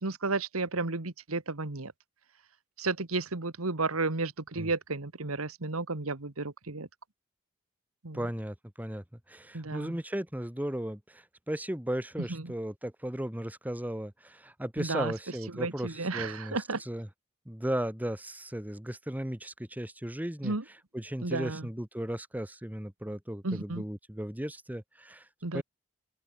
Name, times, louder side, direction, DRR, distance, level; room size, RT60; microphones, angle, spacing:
voice 1, 0.0-1.9 2.8-6.9 8.0-8.2 9.5-10.0 12.3-12.4 14.8-15.1 15.5-16.8 20.4-20.6 21.2-21.7 23.4-23.8 25.4-25.6, right 3 dB, 90° right, 1.7 m, -32 dB
voice 2, 8.1-17.1 17.4-20.5 20.9-25.3 25.5-25.6, right 1 dB, 10° right, 1.2 m, -36 dB
open air
head